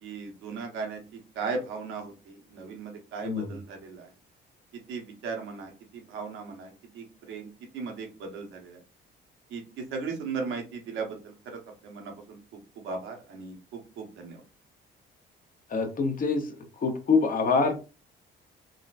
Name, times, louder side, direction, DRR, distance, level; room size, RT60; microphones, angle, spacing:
voice 1, 0.0-4.1 4.9-8.8 9.5-12.4 12.8-14.4, right 4 dB, 90° right, 2 dB, 1.0 m, -37 dB
voice 2, 3.2-3.5 15.7-16.5 16.8-17.8, left 4 dB, 45° left, 5 dB, 0.8 m, -25 dB
3.7 x 2.1 x 2.5 m, 0.31 s
cardioid pair, 90°, 20 cm